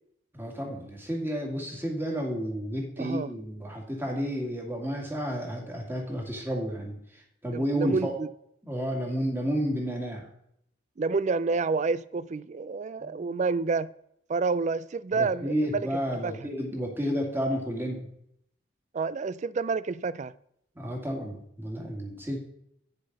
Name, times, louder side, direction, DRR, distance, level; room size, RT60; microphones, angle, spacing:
voice 1, 0.3-6.9 7.4-8.1 8.7-10.3 13.0-13.3 15.1-18.1 20.8-22.4, equal, 10° right, 2.2 m, -31 dB
voice 2, 3.0-3.3 7.5-8.3 11.0-13.9 14.3-15.9 16.2-16.5 18.9-20.3, right 4 dB, 35° right, 0.3 m, -29 dB
9.6 x 6.9 x 5.3 m
head